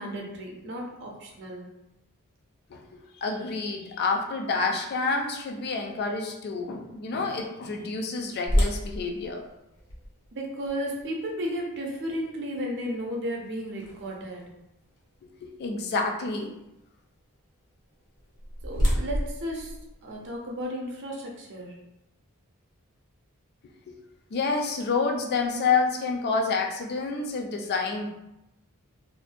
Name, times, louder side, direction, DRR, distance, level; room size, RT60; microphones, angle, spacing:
voice 1, 0.0-1.7 10.3-14.5 18.6-21.8, equal, 55° right, 0 dB, 0.6 m, -34 dB
voice 2, 2.7-9.4 15.4-16.5 23.9-24.0 24.3-28.1, left 4 dB, 45° left, 3 dB, 0.4 m, -28 dB
sound 1, 8.5-14.4 15.0-15.1 15.7-15.9 18.0-20.6, equal, 85° left, 0.7 m, -31 dB
2.5 x 2.1 x 2.5 m, 0.89 s
head